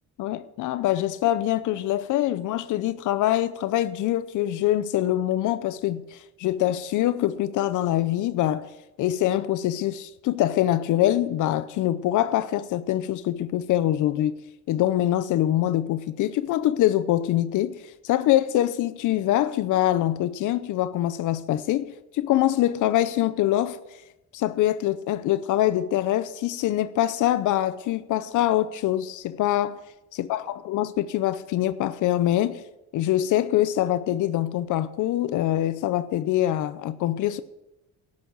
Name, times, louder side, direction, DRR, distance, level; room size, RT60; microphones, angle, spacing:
voice 1, 0.2-8.7 9.0-14.3 14.7-23.8 24.3-29.8 30.1-32.6 32.9-37.4, left 13 dB, 80° left, 0.6 m, -24 dB
12.5 x 6.3 x 7.5 m
cardioid pair, 90°, 30 cm